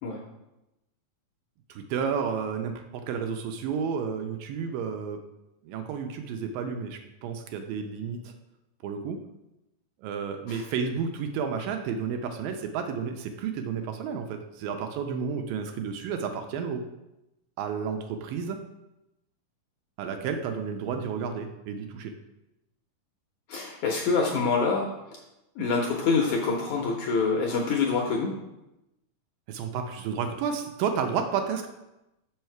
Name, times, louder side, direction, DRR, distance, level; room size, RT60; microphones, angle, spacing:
voice 1, 1.7-5.2 5.6-8.3 8.8-9.2 10.0-16.8 17.6-18.6 20.0-22.1 29.5-31.7, right 6 dB, 80° right, 5 dB, 2.2 m, -31 dB
voice 2, 23.5-25.2 25.6-28.4, left 4 dB, 75° left, 0 dB, 1.8 m, -26 dB
6.6 x 5.5 x 4.5 m, 0.92 s
omnidirectional pair, 4.2 m